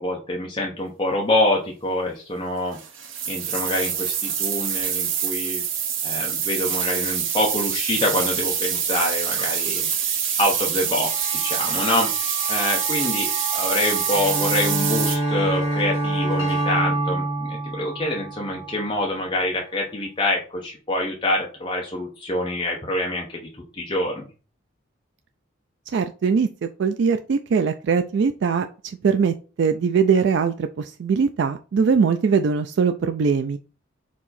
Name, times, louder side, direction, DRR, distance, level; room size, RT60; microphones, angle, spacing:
voice 1, 0.0-2.8 3.3-5.6 6.0-24.3, left 1 dB, 25° left, -2 dB, 0.8 m, -26 dB
sound 1, 2.7-15.2, right 8 dB, 80° right, 0.8 m, -25 dB
sound 2, 10.8-19.4, right 5 dB, 80° left, 2.1 m, -33 dB
Bowed string instrument, 14.1-18.7, right 1 dB, 30° right, 1.2 m, -26 dB
voice 2, 25.9-28.7 29.0-33.6, right 5 dB, 65° right, 7 dB, 0.3 m, -21 dB
4.6 x 2.8 x 4.1 m, 0.34 s
head